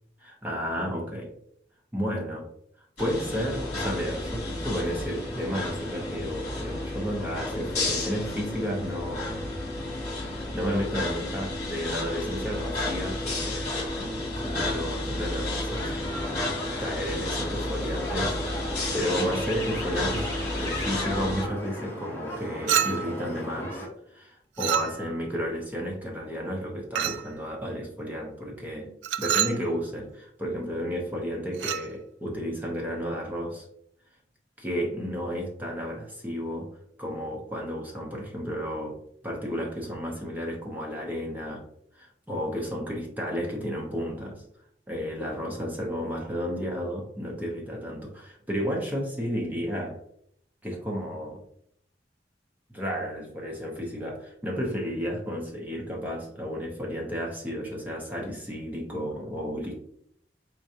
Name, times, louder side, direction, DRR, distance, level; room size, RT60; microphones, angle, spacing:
voice 1, 0.2-1.3 1.9-2.5 3.0-9.4 10.5-16.1 16.8-20.3 20.6-33.7 34.6-36.7 37.0-39.0 39.2-41.6 41.9-44.4 44.9-50.0 50.6-51.4 52.7-59.8, equal, 10° right, -1 dB, 0.7 m, -32 dB
sound 1, 3.0-21.4, left 2 dB, 40° left, 1.6 m, -32 dB
sound 2, 15.7-23.9, equal, 10° left, 1.1 m, -36 dB
Chink clink, 22.7-23.2 24.6-25.3 27.0-27.3 29.0-29.6 31.5-31.9, right 9 dB, 90° right, 0.4 m, -27 dB
4.6 x 3.7 x 2.8 m, 0.68 s
head